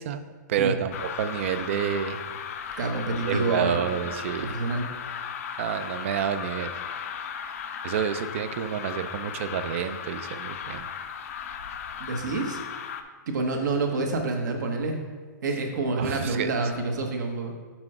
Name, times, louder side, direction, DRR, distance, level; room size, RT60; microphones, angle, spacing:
voice 1, 0.0-2.2 3.3-4.6 5.6-6.7 7.8-10.9 16.0-16.5, right 8 dB, 40° right, 11 dB, 0.4 m, -29 dB
sound 1, 0.9-13.0, left 7 dB, 50° left, 0.5 m, -36 dB
voice 2, 2.8-3.8 4.4-4.8 12.0-12.6 13.3-15.0 15.4-17.5, right 3 dB, 70° right, 3 dB, 1.1 m, -28 dB
6.1 x 4.4 x 4.9 m, 1.5 s
hypercardioid pair, 170°, 10 cm